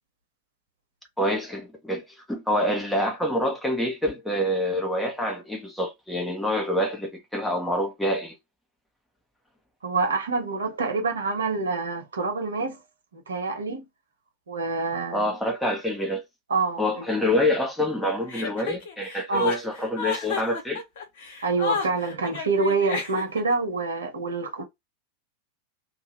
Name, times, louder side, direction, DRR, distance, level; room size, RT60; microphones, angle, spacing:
voice 1, 1.2-8.4 15.1-16.2 16.8-20.8, left 1 dB, 5° left, 0.9 m, -26 dB
voice 2, 9.8-12.8 13.1-13.8 14.5-15.3 16.5-17.3 19.3-19.5 21.4-24.6, right 4 dB, 70° right, 1.1 m, -27 dB
Chuckle chortle, 18.3-23.5, left 5 dB, 55° left, 1.0 m, -31 dB
2.7 x 2.6 x 3.0 m
figure-of-eight pair, 90°, 0 cm